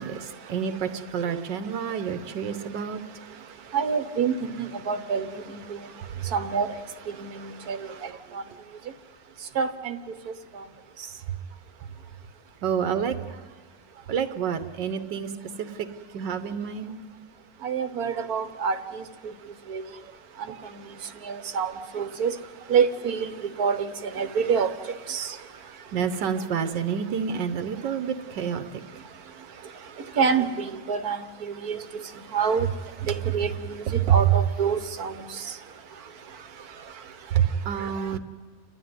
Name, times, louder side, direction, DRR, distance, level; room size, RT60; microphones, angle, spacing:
voice 1, 0.0-3.0 5.9-6.3 7.9-8.6 11.3-11.4 12.6-13.5 13.9-15.3 15.6-15.9 16.1-16.9 18.1-18.2 19.9-20.1 20.4-20.7 25.8-28.8 32.5-32.6 33.2-33.3 33.9-34.4 35.4-36.1 37.3-38.2, right 8 dB, 85° right, 9 dB, 1.6 m, -28 dB
voice 2, 3.7-5.4 6.3-6.7 7.2-7.8 9.6-10.0 17.6-19.0 19.7-19.8 20.7-20.9 21.2-22.3 22.7-23.3 23.6-24.7 25.1-25.3 30.2-31.8 32.3-32.7 33.0-35.2, right 6 dB, 60° right, 9 dB, 1.5 m, -26 dB
29.5 x 12.5 x 9.4 m, 1.5 s
omnidirectional pair, 1.9 m